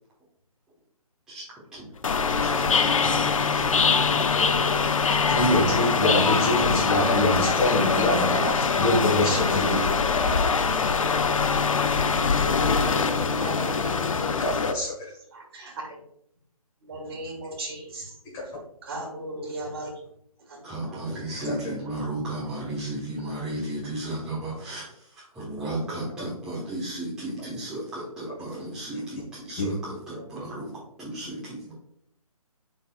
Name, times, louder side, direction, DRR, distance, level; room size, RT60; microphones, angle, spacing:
sound 1, 2.0-14.7, left 5 dB, 60° left, 0.6 m, -23 dB
voice 1, 2.4-4.5 20.6-24.8 25.1-30.7 31.0-31.7, right 1 dB, 5° right, -12 dB, 1.3 m, -34 dB
voice 2, 5.3-10.3 14.4-14.9 21.4-21.6 29.6-29.8, left 1 dB, 15° left, -4 dB, 1.7 m, -25 dB
voice 3, 12.3-13.8 14.1-14.3 15.3-15.7 16.8-18.2 18.8-19.9 20.5-21.3 25.9-26.1 28.3-28.4 30.2-30.3, right 1 dB, 40° right, 0 dB, 1.8 m, -37 dB
10.0 x 4.0 x 2.4 m, 0.71 s
figure-of-eight pair, 155°, 19 cm